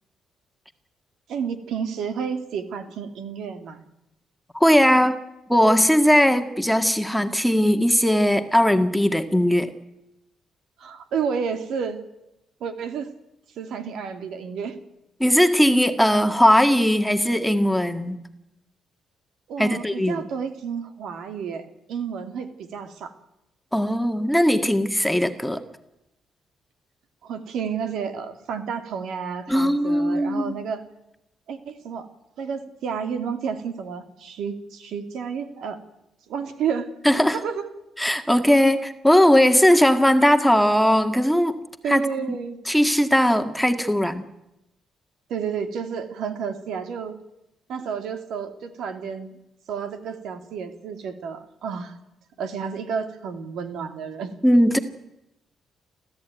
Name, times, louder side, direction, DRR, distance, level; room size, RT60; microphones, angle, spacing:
voice 1, 1.3-3.8 10.8-12.0 12.6-13.1 13.6-14.8 19.5-23.1 27.2-30.8 31.5-32.1 32.4-35.8 36.3-36.9 37.3-37.6 41.8-42.6 45.3-47.2 47.7-49.4 49.7-52.0 52.4-54.3, right 6 dB, 75° right, 8 dB, 2.4 m, -31 dB
voice 2, 4.5-5.2 5.5-9.7 15.2-18.2 19.6-20.3 23.7-25.6 29.5-30.6 37.1-37.4 38.0-41.6 41.9-42.4 42.7-44.3 54.4-54.8, equal, 5° left, 7 dB, 1.8 m, -19 dB
30.0 x 13.5 x 9.3 m, 0.91 s
cardioid pair, 90°, 0 cm